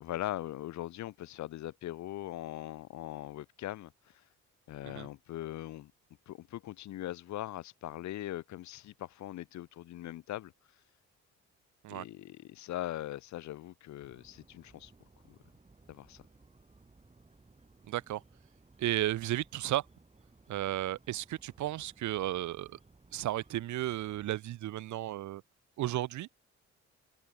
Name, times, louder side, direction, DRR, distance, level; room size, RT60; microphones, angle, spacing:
voice 1, 0.0-3.9 4.7-5.9 6.3-10.5 11.9-14.9 15.3-15.4 15.9-16.2, left 14 dB, 70° left, 0.7 m, -40 dB
sound 1, 14.0-24.3, right 3 dB, 20° right, 6.7 m, -61 dB
voice 2, 17.9-18.2 18.8-19.8 20.5-22.8 23.1-25.4 25.8-26.3, right 14 dB, 70° right, 0.9 m, -34 dB
open air
cardioid pair, 90°, 30 cm